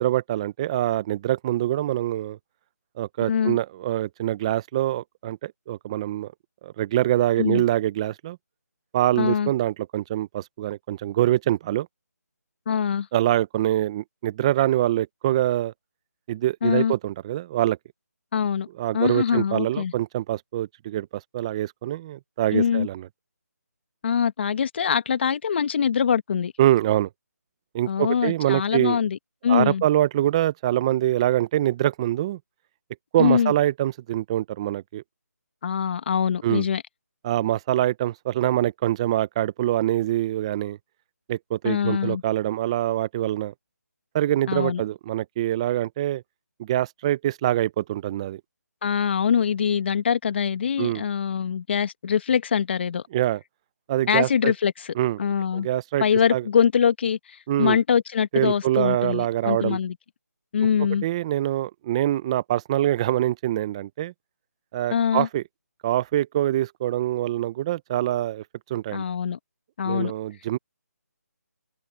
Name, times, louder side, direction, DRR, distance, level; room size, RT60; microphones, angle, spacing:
voice 1, 0.0-2.4 3.0-6.3 6.6-8.4 8.9-11.9 13.1-15.7 16.3-17.8 18.8-21.1 21.3-23.1 26.6-27.1 27.7-29.0 29.5-32.4 33.1-35.0 36.4-36.7 37.2-40.8 41.3-43.5 44.1-46.2 46.6-48.4 50.8-51.0 53.1-53.4 53.9-54.5 55.0-55.2 55.5-56.0 56.3-56.5 57.5-57.8 58.3-59.8 61.0-64.1 64.7-65.4 65.8-68.4 68.7-69.0 69.9-70.6, right 13 dB, 20° right, 0.8 m, -24 dB
voice 2, 3.3-3.6 7.4-7.6 9.2-9.5 12.7-13.1 16.6-16.9 18.3-18.7 18.9-19.9 22.5-22.9 24.0-26.5 27.9-29.8 33.2-33.5 35.6-36.8 41.6-42.2 44.5-44.8 48.8-53.0 54.1-54.9 55.2-55.7 56.0-59.9 60.5-61.1 64.9-65.3 68.9-69.4 69.8-70.1, left 7 dB, 40° left, 1.8 m, -23 dB
open air
figure-of-eight pair, 165°, 9 cm